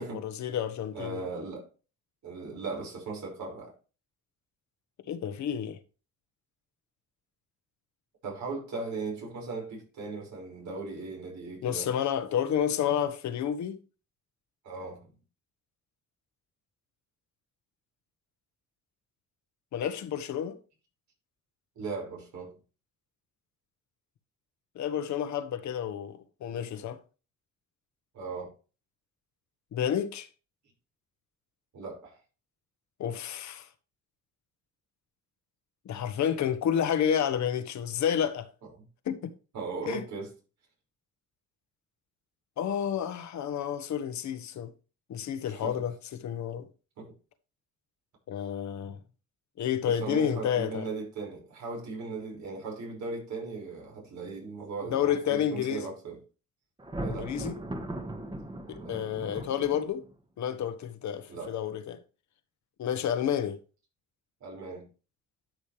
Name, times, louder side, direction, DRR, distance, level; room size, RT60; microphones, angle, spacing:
voice 1, 0.2-1.2 5.1-5.8 11.6-13.8 19.7-20.6 24.7-27.0 29.7-30.3 33.0-33.7 35.8-38.5 39.0-39.3 39.9-40.0 42.6-44.7 45.1-46.7 48.3-49.0 49.6-50.9 54.9-55.8 57.0-57.6 58.7-60.0 60.4-62.0 62.8-63.6, left 9 dB, 70° left, 1.3 m, -30 dB
voice 2, 0.9-1.7 2.2-3.7 8.2-11.9 14.6-15.1 21.8-22.5 28.1-28.5 31.7-32.2 38.6-38.8 39.5-40.3 45.4-45.9 47.0-47.1 49.8-56.2 57.0-57.4 58.8-59.0 61.3-61.6 64.4-64.9, right 3 dB, 70° right, 5.7 m, -38 dB
Thunder, 56.8-60.1, right 1 dB, 15° right, 1.6 m, -38 dB
12.0 x 6.5 x 3.3 m
cardioid pair, 90°, 30 cm